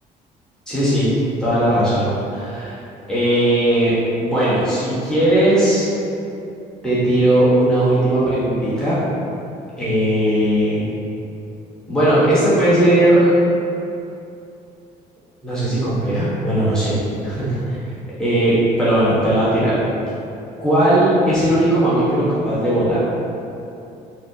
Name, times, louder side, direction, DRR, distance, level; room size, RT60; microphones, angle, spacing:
voice 1, 0.7-1.1 1.4-2.8 3.1-5.9 6.8-9.0 9.8-10.9 11.9-13.3 15.4-17.0 17.2-17.8 18.2-19.8 20.6-23.0, right 1 dB, 5° left, -12 dB, 1.1 m, -17 dB
4.2 x 2.0 x 2.8 m, 2.7 s
cardioid pair, 110°, 17 cm